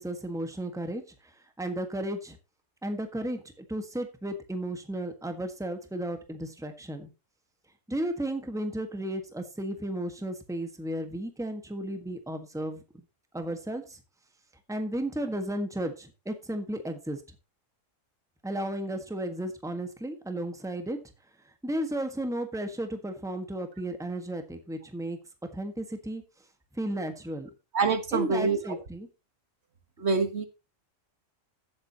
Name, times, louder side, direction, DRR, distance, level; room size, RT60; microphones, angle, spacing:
voice 1, 0.0-2.4 2.8-7.1 7.9-12.8 13.3-14.0 14.7-17.2 18.4-21.0 21.6-25.2 25.5-26.2 26.7-27.5 28.1-29.1, right 1 dB, 5° right, 6 dB, 1.5 m, -34 dB
voice 2, 27.7-28.6 30.0-30.5, right 4 dB, 60° right, 8 dB, 1.6 m, -25 dB
15.5 x 7.8 x 2.9 m, 0.28 s
omnidirectional pair, 1.3 m